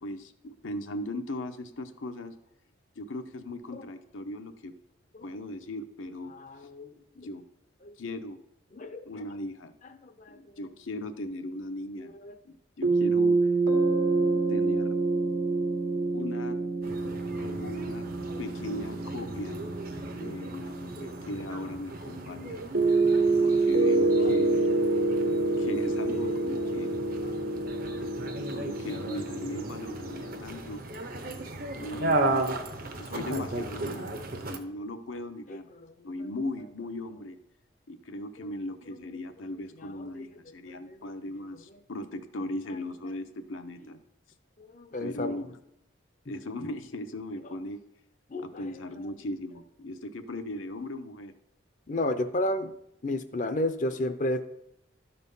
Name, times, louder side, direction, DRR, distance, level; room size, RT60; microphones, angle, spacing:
voice 1, 0.0-2.3 3.0-4.7 5.2-6.3 6.6-6.7 7.2-7.4 8.0-8.4 9.0-9.7 10.3-12.1 12.4-13.3 14.3-15.0 16.1-16.6 17.0-18.1 18.4-19.6 20.1-22.6 23.4-24.6 25.5-26.9 28.5-30.8 31.8-32.5 33.0-35.7 36.0-37.4 37.9-44.0 45.0-45.6 46.2-47.8 48.4-51.3, left 1 dB, 85° left, 7 dB, 0.8 m, -38 dB
voice 2, 6.3-7.3 7.8-7.9 8.7-9.1 10.0-10.4 12.0-12.3 21.1-21.2 23.7-24.3 24.9-25.3 26.2-26.3 27.3-27.7 28.0-28.1 33.0-33.1 33.4-33.5 33.9-34.0 35.5-35.6 36.0-36.1 38.4-38.5 40.0-40.2 40.7-41.0 44.6-45.4 48.3-48.7 51.9-52.7 53.0-54.4, left 1 dB, 40° left, 10 dB, 0.5 m, -33 dB
Rheyne Rhodes, 12.8-21.5 22.7-30.4, right 3 dB, 90° right, 1.5 m, -27 dB
sound 1, 16.8-34.6, right 2 dB, 45° right, 0.8 m, -36 dB
12.5 x 4.4 x 5.4 m, 0.79 s
head